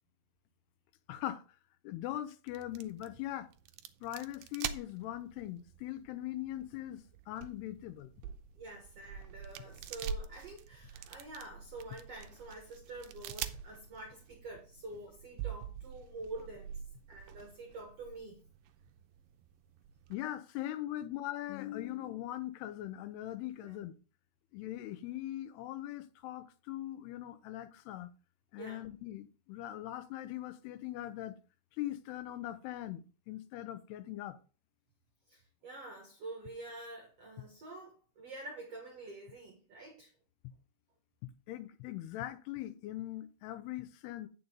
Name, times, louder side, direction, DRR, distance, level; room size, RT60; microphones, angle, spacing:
voice 1, 1.1-1.4 1.8-3.5 4.0-8.1 20.1-23.9 24.5-28.1 28.5-31.4 31.8-34.4 41.2-44.3, left 14 dB, 90° left, 2.8 m, -41 dB
sound 1, 2.5-20.2, right 8 dB, 80° right, 2.1 m, -46 dB
voice 2, 8.6-16.7 17.1-18.4 23.6-23.8 28.6-28.8 35.3-40.1, right 2 dB, 55° right, 2.0 m, -47 dB
8.7 x 6.7 x 3.9 m
omnidirectional pair, 4.6 m